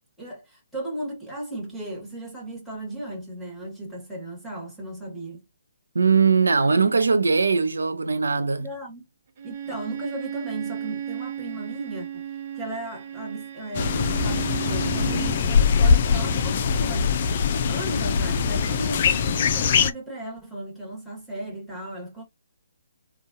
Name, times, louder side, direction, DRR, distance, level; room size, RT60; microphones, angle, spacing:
voice 1, 0.2-5.4 8.6-9.0 9.4-12.3 12.5-22.2, right 1 dB, ahead, 1.4 m, -36 dB
voice 2, 5.9-8.7, right 5 dB, 75° right, 0.6 m, -20 dB
Bowed string instrument, 9.4-15.4, right 9 dB, 45° right, 0.8 m, -34 dB
sound 1, 13.7-19.9, left 6 dB, 45° left, 0.5 m, -22 dB
3.8 x 2.3 x 2.5 m
figure-of-eight pair, 135°, 0 cm